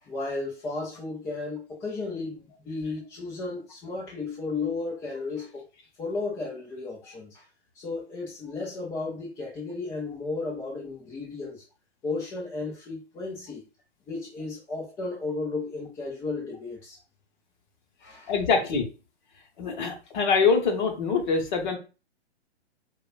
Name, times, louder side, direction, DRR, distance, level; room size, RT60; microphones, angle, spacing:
voice 1, 0.0-5.7 6.0-7.4 7.8-11.6 12.0-13.6 14.1-17.0 18.0-18.3, left 3 dB, 10° left, 0.4 m, -34 dB
voice 2, 18.3-18.9 19.6-21.8, left 5 dB, 40° left, 1.0 m, -24 dB
4.7 x 2.2 x 2.4 m
figure-of-eight pair, 125°, 34 cm